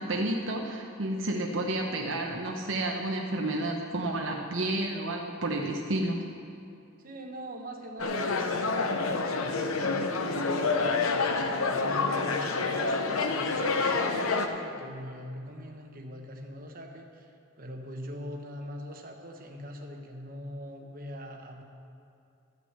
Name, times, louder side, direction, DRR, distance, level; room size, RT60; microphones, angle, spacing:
voice 1, 0.0-6.2, right 1 dB, 65° right, 1 dB, 0.9 m, -31 dB
voice 2, 7.0-11.5 11.8-21.6, equal, 40° right, 2 dB, 1.1 m, -42 dB
sound 1, 8.0-14.5, left 4 dB, 85° left, 0.9 m, -28 dB
13.0 x 6.2 x 8.1 m, 2.6 s
head